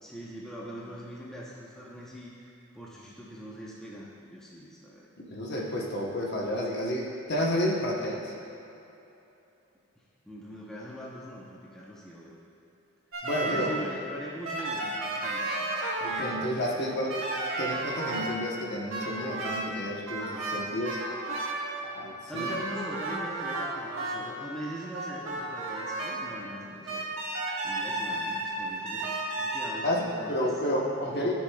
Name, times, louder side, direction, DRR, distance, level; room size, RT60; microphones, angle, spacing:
voice 1, 0.0-5.1 10.3-12.3 13.3-15.7 22.3-27.1 27.6-30.6 31.1-31.3, equal, 5° left, -6 dB, 0.7 m, -41 dB
voice 2, 5.2-8.3 13.2-13.8 16.0-17.3 17.6-21.0 21.8-22.5 29.8-31.3, equal, 50° left, -2 dB, 1.0 m, -31 dB
sound 1, 13.1-14.0 14.5-16.3 17.1-18.3 18.9-19.7 20.1-21.8 22.3-24.3 24.9-26.2 26.9-29.7, right 2 dB, 65° right, 1.4 m, -33 dB
13.0 x 6.2 x 2.3 m, 2.9 s
head